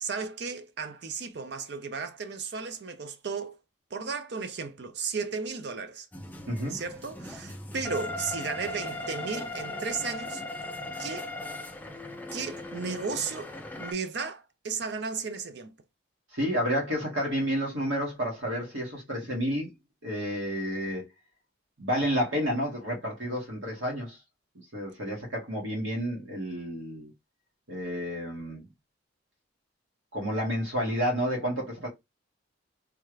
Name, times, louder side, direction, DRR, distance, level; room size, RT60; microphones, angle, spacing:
voice 1, 0.0-3.6 3.9-6.1 6.7-10.4 11.0-11.3 12.3-15.7, right 5 dB, 55° right, 0.5 m, -34 dB
sound 1, 6.1-13.9, left 2 dB, 10° left, 0.4 m, -38 dB
voice 2, 6.5-6.8 16.3-19.7 20.0-21.1 21.8-24.2 24.7-27.1 27.7-28.7 30.1-31.9, equal, 80° right, 1.7 m, -30 dB
3.5 x 2.4 x 3.2 m
head